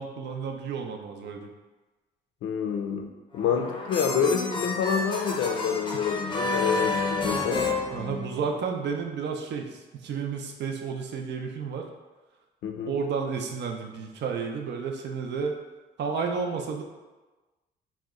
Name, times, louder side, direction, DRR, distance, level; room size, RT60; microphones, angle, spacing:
voice 1, 0.0-1.5 5.9-6.0 7.9-11.9 12.9-15.5 16.0-16.8, right 5 dB, 60° right, 3 dB, 0.5 m, -31 dB
voice 2, 2.4-3.1 3.3-7.6 12.6-12.9, left 7 dB, 75° left, 4 dB, 0.4 m, -27 dB
sound 1, 3.3-8.7, left 3 dB, 25° left, 0.5 m, -30 dB
2.8 x 2.1 x 3.5 m, 1.2 s
cardioid pair, 90°, 20 cm